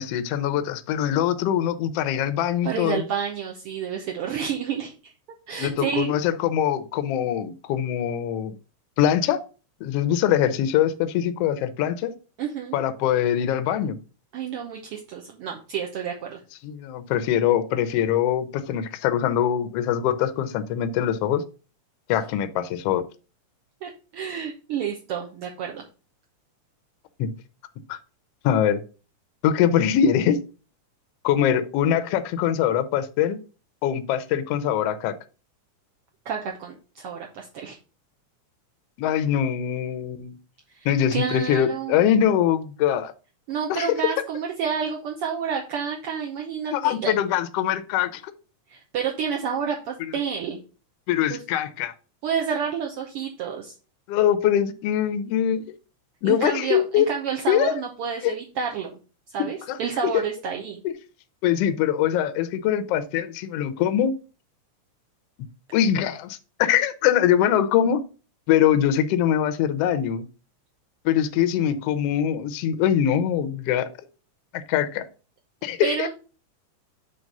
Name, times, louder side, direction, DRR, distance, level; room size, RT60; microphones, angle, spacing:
voice 1, 0.0-3.0 5.6-8.6 9.0-9.4 9.8-12.1 12.7-14.0 16.6-21.4 22.1-23.0 27.2-27.3 27.9-28.0 28.4-28.8 29.4-30.4 31.2-33.4 33.8-35.1 39.0-40.3 40.8-43.1 43.7-43.9 46.7-48.3 50.0-50.1 51.1-51.9 54.1-55.6 56.2-57.1 57.5-57.8 58.2-58.3 59.7-59.8 60.1-60.2 60.8-60.9 61.4-64.1 65.7-68.0 68.5-70.3 71.0-73.9 74.5-75.0 75.6-76.1, left 10 dB, 75° left, 10 dB, 1.4 m, -23 dB
voice 2, 2.6-5.1 5.5-6.1 12.4-12.8 14.3-16.4 23.8-25.8 36.2-37.8 40.7-42.2 43.5-47.1 48.7-50.6 51.3-51.4 52.2-53.7 56.2-59.0 59.3-60.8 75.8-76.1, right 7 dB, 70° right, 0 dB, 1.4 m, -29 dB
7.6 x 3.2 x 5.3 m, 0.35 s
omnidirectional pair, 3.6 m